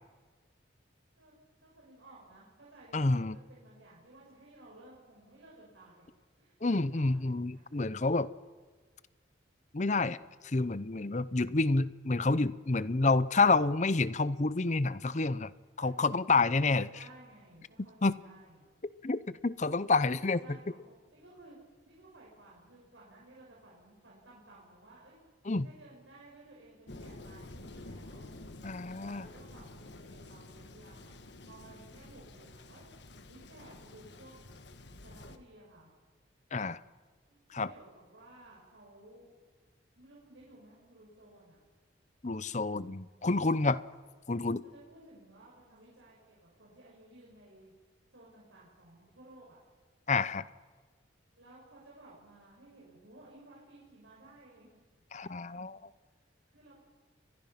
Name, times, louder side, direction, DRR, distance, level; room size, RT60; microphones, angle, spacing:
voice 1, 1.6-6.0 6.3-8.0 11.2-11.8 15.7-16.1 16.5-18.7 20.2-21.6 21.8-25.2 25.6-28.3 28.9-32.8 33.2-34.3 35.0-35.9 37.3-39.3 40.0-41.6 44.6-47.7 48.1-49.6 51.4-54.7 55.2-55.6 56.5-56.8, right 2 dB, 80° right, -5 dB, 6.3 m, -56 dB
voice 2, 2.9-3.4 6.6-8.3 9.7-10.2 10.4-15.5 15.8-16.9 18.0-18.1 19.0-20.6 25.4-25.7 28.6-29.3 36.5-36.8 37.5-37.7 42.2-43.8 44.3-44.6 50.1-50.4 55.1-55.9, left 3 dB, 40° left, 16 dB, 0.7 m, -29 dB
Thunder, 26.9-35.4, left 2 dB, 65° left, 1.4 m, -50 dB
29.5 x 23.0 x 5.9 m, 1.5 s
head